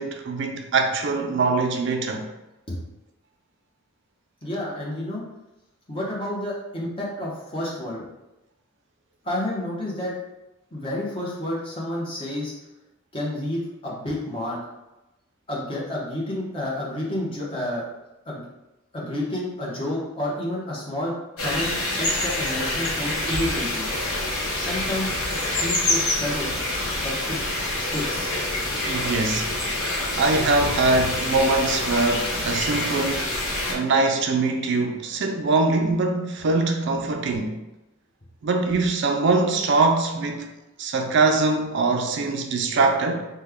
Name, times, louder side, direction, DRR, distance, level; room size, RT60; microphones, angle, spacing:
voice 1, 0.0-2.3 19.0-19.1 28.7-29.5 30.2-37.6 38.4-40.5 40.8-43.2, right 3 dB, 55° right, 0.4 m, -23 dB
voice 2, 4.4-5.2 5.9-8.0 9.2-10.1 10.7-12.5 13.1-14.6 15.5-17.9 18.3-18.5 18.9-21.1 21.4-23.9 24.5-25.2 25.6-26.5 27.0-27.4 27.8-28.3, left 1 dB, 25° left, 0.8 m, -30 dB
sound 1, 21.4-33.8, left 1 dB, 90° left, 0.8 m, -26 dB
3.1 x 2.2 x 3.5 m
head